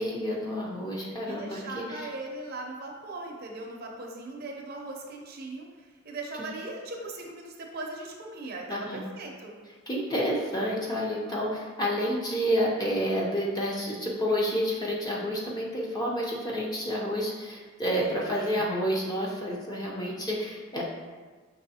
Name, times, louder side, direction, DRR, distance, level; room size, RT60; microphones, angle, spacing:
voice 1, 0.0-2.1 8.7-9.0 9.9-20.8, equal, 20° left, -4 dB, 0.6 m, -29 dB
voice 2, 1.2-5.7 6.0-9.6 18.0-18.6 19.8-20.3, right 2 dB, 45° right, 0 dB, 0.6 m, -39 dB
5.4 x 3.1 x 2.8 m, 1.4 s
head